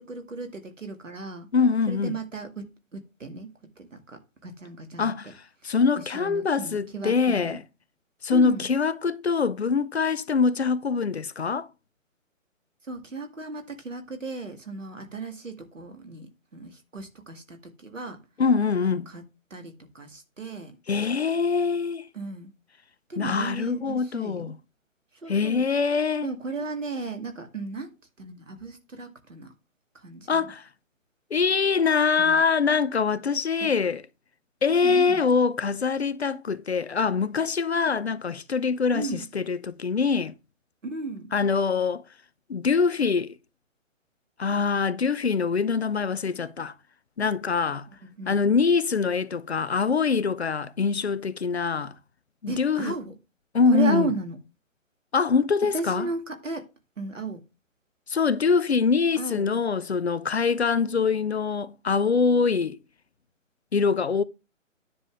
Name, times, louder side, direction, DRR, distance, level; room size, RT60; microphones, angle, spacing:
voice 1, 0.0-1.5 1.9-5.1 5.6-5.7 6.1-7.6 8.3-8.7 12.9-18.2 19.1-19.2 19.5-20.8 22.1-22.5 23.1-24.5 25.2-25.6 26.2-27.9 28.2-29.5 29.9-30.5 32.2-32.4 33.6-33.7 34.7-35.2 38.9-39.3 40.8-41.3 48.0-48.4 52.5-53.1 53.7-54.4 55.7-56.7 57.0-57.4 59.2-59.5, right 3 dB, 65° right, 2.4 m, -35 dB
voice 2, 1.5-2.1 5.0-5.3 5.6-7.6 8.2-11.7 18.4-19.1 20.9-22.1 23.2-24.5 25.3-26.3 30.3-30.6 31.3-34.0 34.6-40.3 41.3-42.0 42.5-43.3 44.4-46.7 47.2-47.9 48.3-51.9 52.4-52.9 53.5-54.1 55.1-56.1 58.1-62.8 63.7-64.2, left 5 dB, 55° left, 0.7 m, -24 dB
10.0 x 6.9 x 3.5 m
figure-of-eight pair, 140°, 40 cm